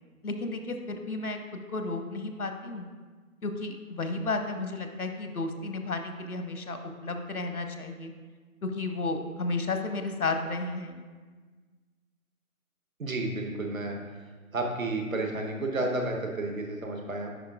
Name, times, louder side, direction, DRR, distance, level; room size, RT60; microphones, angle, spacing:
voice 1, 0.2-1.4 1.7-2.9 3.4-8.1 8.6-11.0, left 3 dB, 85° left, 6 dB, 0.9 m, -33 dB
voice 2, 13.0-14.0 14.5-17.3, right 2 dB, 65° right, 2 dB, 1.1 m, -31 dB
10.0 x 5.0 x 2.4 m, 1.4 s
figure-of-eight pair, 160°, 43 cm